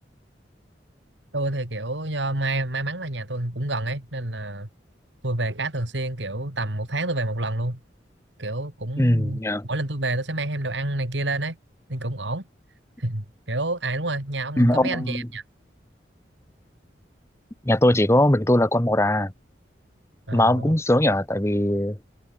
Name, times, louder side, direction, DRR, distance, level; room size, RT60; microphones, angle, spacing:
voice 1, 1.3-4.7 5.2-7.8 8.4-11.6 11.9-12.4 13.0-15.4 20.3-20.8, right 2 dB, 85° right, 3.8 m, -28 dB
voice 2, 9.0-9.6 14.6-15.3 17.6-19.3 20.3-22.0, left 1 dB, 15° left, 1.3 m, -20 dB
head